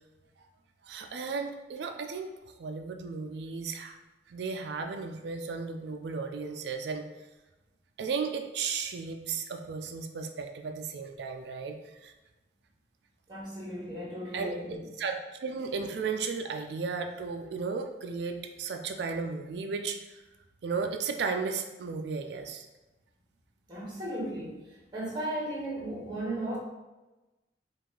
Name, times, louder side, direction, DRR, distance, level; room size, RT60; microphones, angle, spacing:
voice 1, 0.8-4.0 4.3-7.0 8.0-12.1 14.3-20.2 20.6-22.7, right 5 dB, 70° right, 5 dB, 0.3 m, -35 dB
voice 2, 13.3-14.7 23.7-24.6 24.9-26.6, right 1 dB, 25° right, -5 dB, 1.2 m, -35 dB
4.7 x 2.5 x 3.7 m, 1.1 s
head